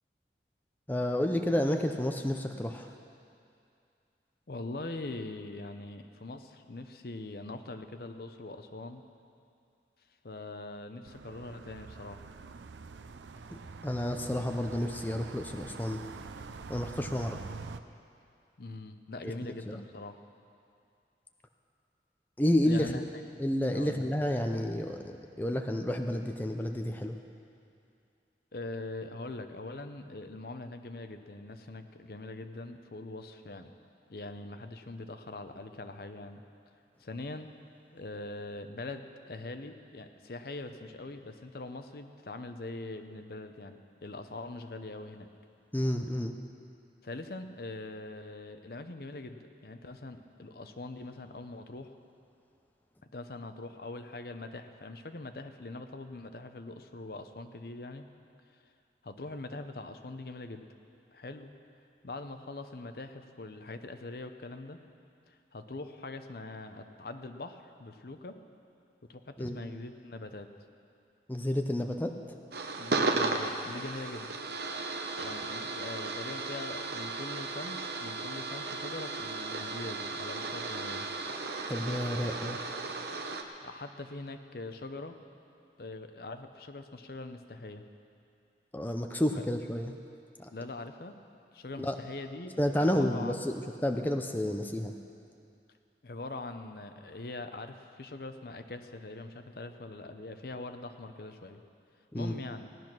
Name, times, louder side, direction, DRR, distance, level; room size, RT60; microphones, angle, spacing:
voice 1, 0.9-2.9 13.5-16.0 16.7-17.4 19.2-19.3 19.7-19.8 22.4-23.0 23.4-27.2 45.7-46.4 69.4-69.6 71.3-72.1 81.7-82.6 88.7-89.9 90.4-90.5 91.8-92.0 92.6-94.9 102.1-102.3, left 1 dB, 10° left, 4 dB, 0.5 m, -30 dB
voice 2, 4.5-9.0 10.2-12.2 18.6-20.2 22.6-23.0 23.7-24.1 28.5-33.7 34.1-36.4 37.0-37.5 37.9-45.3 47.0-51.9 53.1-58.1 59.0-60.7 61.1-61.5 62.0-64.8 65.3-68.4 69.1-70.5 72.8-74.3 75.1-81.1 83.6-85.2 85.8-87.8 89.3-89.4 90.5-91.2 91.5-93.5 96.0-101.6 102.1-102.7, left 2 dB, 55° left, 8 dB, 0.7 m, -42 dB
sound 1, 11.1-17.8, right 4 dB, 90° right, 0.5 m, -45 dB
sound 2, 72.5-83.4, right 3 dB, 65° right, 0.9 m, -35 dB
17.0 x 10.5 x 6.1 m, 2.5 s
head